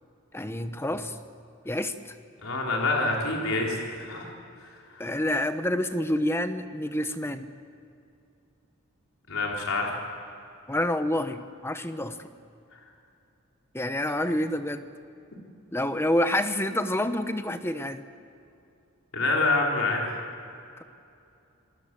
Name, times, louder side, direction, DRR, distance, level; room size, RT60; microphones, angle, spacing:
voice 1, 0.3-1.2 1.6-2.1 5.0-7.5 10.7-12.3 13.7-14.8 15.7-18.0, left 1 dB, 10° left, 9 dB, 1.1 m, -28 dB
voice 2, 2.4-4.3 4.9-5.1 9.3-9.9 19.1-20.0, left 3 dB, 80° left, -1 dB, 4.2 m, -26 dB
27.5 x 20.0 x 7.7 m, 2.6 s
head